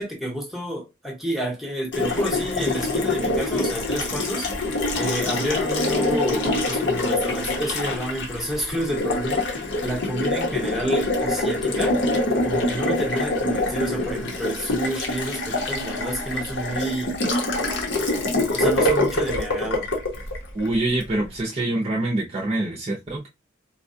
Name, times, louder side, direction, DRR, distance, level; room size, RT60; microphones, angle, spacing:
voice 1, 0.0-4.5 5.0-12.0 12.4-17.1 18.5-19.9, right 1 dB, ahead, 0.9 m, -29 dB
Water tap faucet, 1.9-21.1, left 2 dB, 65° left, 1.0 m, -25 dB
voice 2, 20.5-23.3, right 2 dB, 30° right, 0.6 m, -25 dB
4.0 x 2.2 x 2.7 m
head